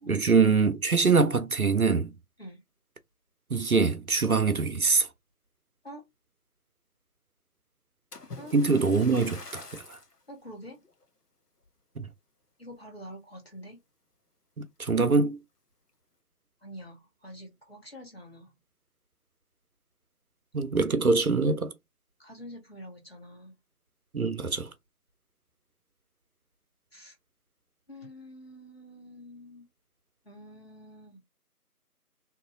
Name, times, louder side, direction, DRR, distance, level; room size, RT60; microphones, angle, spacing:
voice 1, 0.1-2.1 3.5-5.1 8.5-10.0 12.0-12.1 14.6-15.4 20.5-21.7 24.1-24.7, right 4 dB, 65° right, 0.7 m, -24 dB
Splash splatter, 8.1-10.2 10.8-11.0 11.6-11.7, left 3 dB, 80° left, 1.0 m, -45 dB
voice 2, 10.3-10.8 12.6-13.8 16.6-18.5 22.2-23.5 26.9-27.1 27.9-29.6 30.2-31.2, equal, 40° left, 1.3 m, -46 dB
2.9 x 2.6 x 3.7 m
figure-of-eight pair, 175°, 46 cm